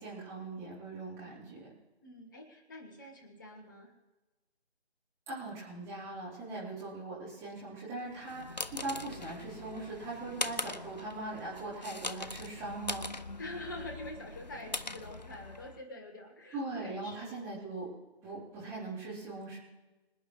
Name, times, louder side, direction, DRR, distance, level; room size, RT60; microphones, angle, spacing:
voice 1, 0.0-1.7 5.3-13.0 16.5-17.9 18.2-19.6, right 2 dB, 10° right, -9 dB, 3.9 m, -40 dB
voice 2, 2.0-3.9 13.4-17.4, left 1 dB, 20° left, 3 dB, 1.4 m, -46 dB
sound 1, 8.1-15.8, left 2 dB, 40° left, 0.4 m, -41 dB
25.5 x 9.8 x 3.2 m, 1.1 s
figure-of-eight pair, 155°, 33 cm